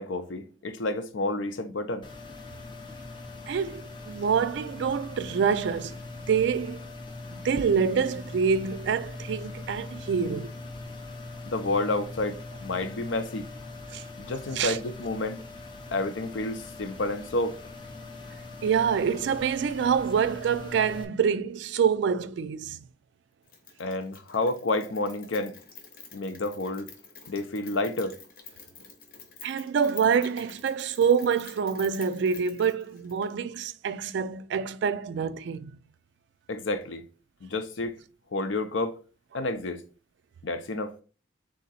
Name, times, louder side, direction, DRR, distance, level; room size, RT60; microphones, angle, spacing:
voice 1, 0.0-2.1 11.5-13.5 14.2-15.4 15.9-17.6 23.8-25.6 26.1-26.9 27.3-28.1 36.5-37.0 37.4-37.9 38.3-38.9 39.3-39.8 40.4-40.9, left 2 dB, 75° left, 0.6 m, -30 dB
sound 1, 2.0-21.0, left 2 dB, 25° left, 0.5 m, -41 dB
voice 2, 3.5-6.0 6.3-6.8 7.3-10.5 13.9-14.0 14.6-14.8 18.6-22.8 29.4-35.7, right 6 dB, 65° right, 0.3 m, -26 dB
Rain, 23.5-33.3, left 5 dB, 50° left, 0.8 m, -49 dB
3.7 x 2.8 x 4.1 m
head